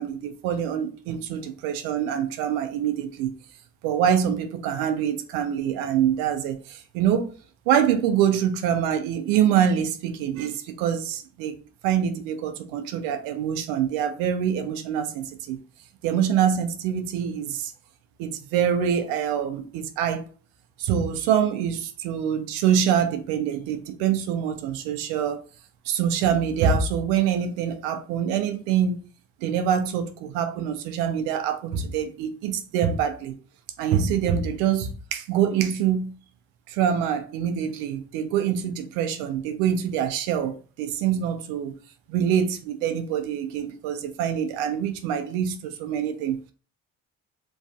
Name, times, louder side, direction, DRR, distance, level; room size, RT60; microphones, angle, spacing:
voice 1, 0.0-3.3 3.8-7.3 7.7-11.6 11.8-15.6 16.0-17.7 18.2-20.2 20.8-25.4 25.9-29.1 29.4-33.3 33.8-36.1 36.7-41.7 42.1-46.5, right 8 dB, 90° right, 0.5 m, -25 dB
3.1 x 2.5 x 2.3 m
supercardioid pair, 60°, 35 cm